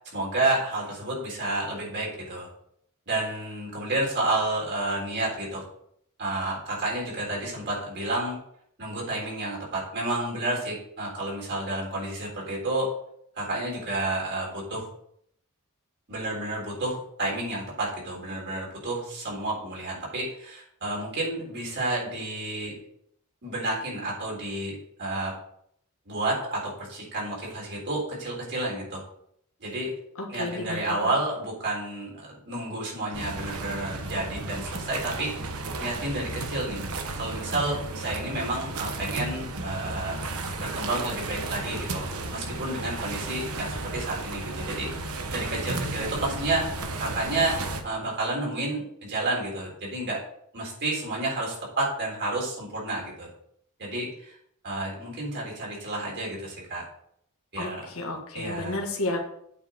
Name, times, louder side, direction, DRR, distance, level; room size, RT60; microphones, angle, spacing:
voice 1, 0.1-2.5 3.1-5.6 6.2-8.4 8.8-12.9 13.4-14.9 16.1-22.8 23.4-25.4 26.1-29.0 29.6-29.9 30.3-35.3 35.8-36.8 37.2-40.2 40.6-50.2 50.5-53.3 53.8-54.4 54.6-56.8 57.5-57.9 58.3-58.8, right 2 dB, 50° right, -3 dB, 3.8 m, -30 dB
voice 2, 30.2-31.1 57.6-59.2, left 2 dB, 70° left, 1 dB, 1.6 m, -32 dB
sound 1, 33.1-47.8, right 2 dB, 80° right, 1.1 m, -34 dB
8.6 x 5.1 x 5.2 m, 0.69 s
head